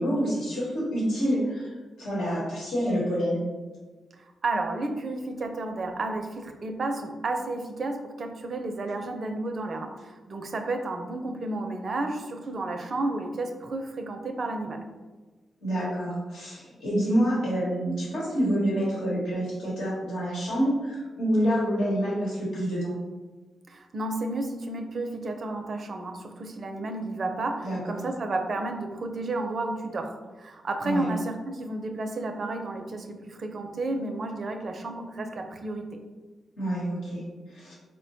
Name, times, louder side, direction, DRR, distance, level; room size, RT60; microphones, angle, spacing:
voice 1, 0.0-3.4 15.6-22.9 27.6-28.0 30.8-31.0 36.6-37.2 37.5-37.8, equal, 90° left, -6 dB, 1.1 m, -27 dB
voice 2, 4.2-14.8 23.7-35.9, right 2 dB, 60° right, 5 dB, 0.4 m, -32 dB
4.2 x 2.1 x 2.6 m, 1.3 s
supercardioid pair, 45°, 0 cm